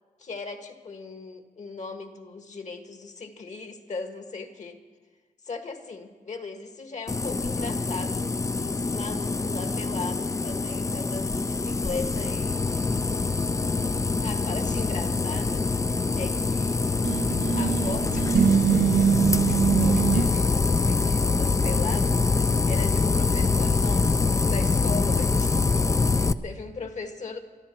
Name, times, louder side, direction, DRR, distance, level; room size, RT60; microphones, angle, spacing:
voice 1, 0.2-4.8 5.4-13.0 14.2-15.7 16.1-16.8 17.6-27.4, left 4 dB, 50° left, 6 dB, 1.6 m, -38 dB
sound 1, 7.1-26.3, left 4 dB, 20° left, 0.4 m, -25 dB
sound 2, 17.0-20.3, right 7 dB, 60° right, 0.5 m, -23 dB
24.5 x 13.0 x 4.5 m, 1.3 s
cardioid pair, 100°, 15 cm